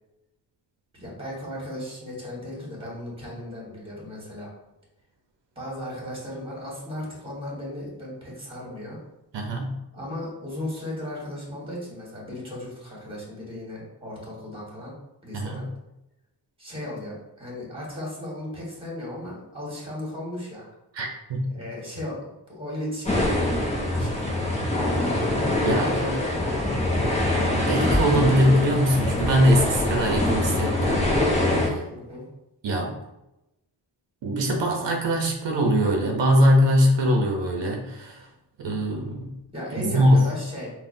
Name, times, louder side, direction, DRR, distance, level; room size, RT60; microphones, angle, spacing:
voice 1, 0.9-4.5 5.5-9.0 9.9-14.9 15.2-15.7 16.6-20.7 21.5-24.5 25.7-26.7 31.9-32.3 39.5-40.7, left 1 dB, 10° right, -4 dB, 1.5 m, -36 dB
voice 2, 9.3-9.8 15.3-15.7 21.0-21.5 25.6-25.9 27.5-31.1 31.6-31.8 32.6-32.9 34.2-38.2 38.6-39.3 39.8-40.3, equal, 75° right, 1 dB, 0.7 m, -22 dB
sound 1, 23.1-31.7, left 1 dB, 15° left, 0.7 m, -24 dB
5.6 x 2.3 x 2.6 m, 0.90 s
wide cardioid pair, 145°, 44 cm